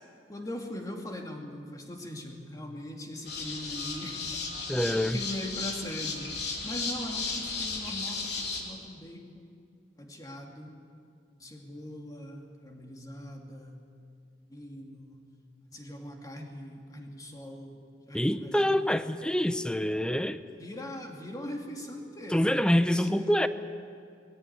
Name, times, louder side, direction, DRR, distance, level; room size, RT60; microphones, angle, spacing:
voice 1, 0.3-4.2 5.0-6.3 6.6-9.5 10.0-10.8 11.4-14.2 14.5-15.3 15.6-19.1 20.6-23.4, left 1 dB, 20° left, 1 dB, 2.6 m, -41 dB
sound 1, 3.2-8.6, left 4 dB, 65° left, 3.2 m, -35 dB
voice 2, 4.7-5.2 18.1-20.4 22.3-23.5, equal, 5° left, 11 dB, 0.7 m, -26 dB
21.5 x 15.5 x 9.6 m, 2.3 s
head